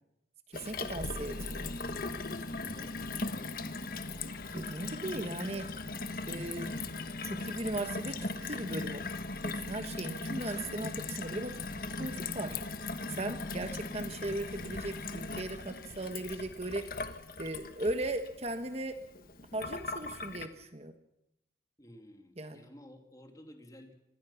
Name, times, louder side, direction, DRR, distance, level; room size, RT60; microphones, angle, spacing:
Gurgling / Water tap faucet / Sink (filling or washing), 0.5-20.5, left 3 dB, 50° left, 1.5 m, -39 dB
voice 1, 0.5-1.7 4.5-5.7 6.3-6.7 7.2-9.0 9.4-11.6 12.0-12.6 13.1-17.0 17.4-19.0 19.5-20.9 22.4-22.7, right 2 dB, 35° right, 8 dB, 1.3 m, -37 dB
voice 2, 2.5-3.0 21.8-23.9, equal, 20° left, 4 dB, 2.9 m, -53 dB
26.0 x 20.5 x 5.8 m, 0.83 s
head